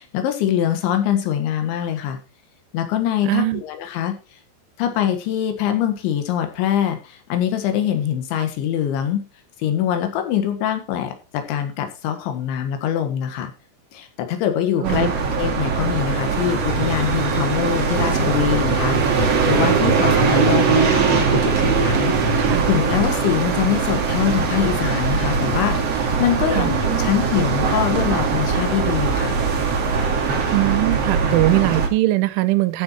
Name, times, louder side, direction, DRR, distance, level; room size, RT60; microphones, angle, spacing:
voice 1, 0.0-2.2 2.7-4.2 4.8-9.3 9.6-13.5 13.9-29.4, left 10 dB, 75° left, 7 dB, 3.9 m, -23 dB
voice 2, 3.2-3.6 14.8-15.1 22.4-22.7 26.5-26.7 30.5-32.8, right 17 dB, 90° right, 14 dB, 3.3 m, -21 dB
sound 1, 14.8-31.9, right 5 dB, 45° right, 2.3 m, -20 dB
13.5 x 8.1 x 4.4 m, 0.32 s
omnidirectional pair, 5.4 m